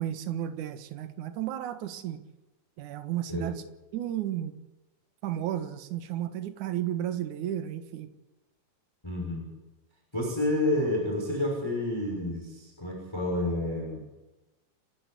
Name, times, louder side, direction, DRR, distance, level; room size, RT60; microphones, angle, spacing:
voice 1, 0.0-2.2 2.8-3.5 3.9-4.6 5.2-8.1, right 11 dB, 65° right, 9 dB, 2.6 m, -33 dB
voice 2, 9.0-9.4 10.1-14.0, left 1 dB, 5° left, -1 dB, 5.9 m, -29 dB
29.5 x 12.5 x 8.1 m, 1.1 s
omnidirectional pair, 4.0 m